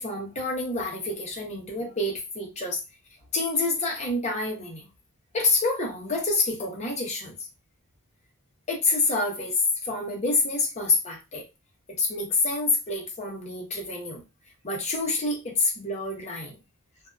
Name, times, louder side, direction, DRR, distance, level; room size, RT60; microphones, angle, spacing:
voice 1, 0.0-2.8 3.3-4.8 5.3-7.3 8.7-9.5 9.8-11.4 12.0-14.2 14.6-16.6, left 3 dB, 30° left, 0 dB, 0.8 m, -27 dB
2.6 x 2.3 x 2.3 m, 0.26 s
head